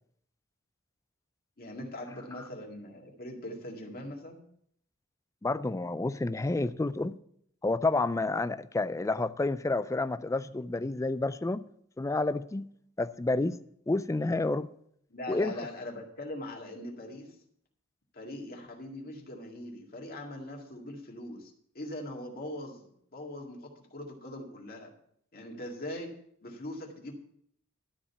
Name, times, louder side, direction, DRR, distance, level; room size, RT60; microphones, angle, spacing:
voice 1, 1.6-4.4 15.1-17.4 18.1-22.8 23.1-24.9 25.3-26.1 26.4-27.1, left 1 dB, 45° left, 2.0 m, -41 dB
voice 2, 5.4-7.2 7.6-11.6 12.0-12.7 13.0-13.6 13.9-14.7 15.3-15.5, left 2 dB, 15° left, 0.3 m, -29 dB
12.5 x 5.1 x 6.9 m
head